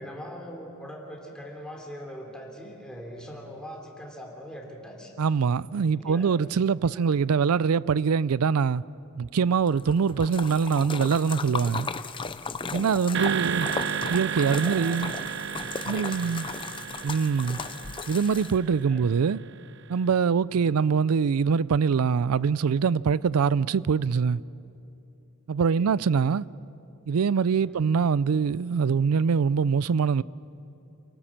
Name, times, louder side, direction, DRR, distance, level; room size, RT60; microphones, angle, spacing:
voice 1, 0.0-5.1 5.9-6.3 6.8-7.1 12.9-13.5 14.5-15.0 15.8-16.4 17.4-17.8 18.9-19.0 20.5-20.8 25.7-25.9 27.7-27.8, equal, 5° left, 3.2 m, -42 dB
voice 2, 5.2-8.8 9.2-11.9 12.7-13.7 14.1-15.1 15.8-16.4 17.0-17.6 18.1-19.4 19.9-24.4 25.5-26.4 27.1-30.2, right 6 dB, 90° right, 0.4 m, -24 dB
Splash splatter, 9.7-18.8, left 4 dB, 25° left, 0.6 m, -36 dB
sound 1, 13.1-19.5, right 7 dB, 55° right, 0.7 m, -33 dB
28.5 x 18.0 x 7.4 m
head